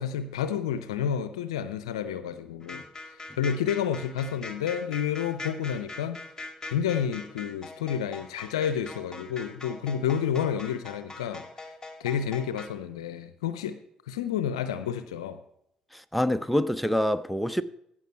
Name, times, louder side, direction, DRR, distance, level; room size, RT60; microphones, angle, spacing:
voice 1, 0.0-2.8 3.4-6.2 6.7-11.4 12.0-13.8 14.1-15.4, left 8 dB, 85° left, 0.6 m, -30 dB
sound 1, 2.6-12.7, left 3 dB, 20° left, 2.0 m, -42 dB
voice 2, 15.9-17.6, left 1 dB, ahead, 0.7 m, -26 dB
16.0 x 5.9 x 4.4 m
hypercardioid pair, 50°, 3 cm